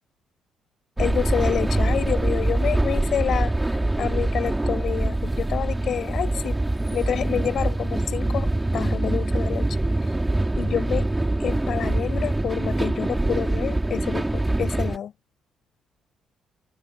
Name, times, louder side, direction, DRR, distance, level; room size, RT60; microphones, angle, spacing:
voice 1, 1.0-3.5 4.0-6.6 6.9-9.7 10.6-11.1 11.4-15.1, left 9 dB, 55° left, 7.9 m, -28 dB
sound 1, 1.0-15.0, right 2 dB, 10° right, 4.2 m, -24 dB
cardioid pair, 115°, 0 cm